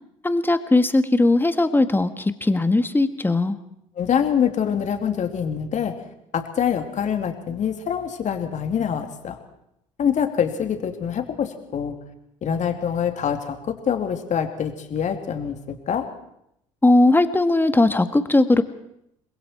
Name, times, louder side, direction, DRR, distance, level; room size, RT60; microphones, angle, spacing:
voice 1, 0.2-3.6 16.8-18.6, left 2 dB, 10° left, 10 dB, 1.9 m, -18 dB
voice 2, 4.0-5.9 6.3-9.4 10.0-12.0 12.4-16.1, left 8 dB, 45° left, 5 dB, 3.0 m, -25 dB
28.0 x 21.5 x 4.6 m, 0.78 s
hypercardioid pair, 65°, 17 cm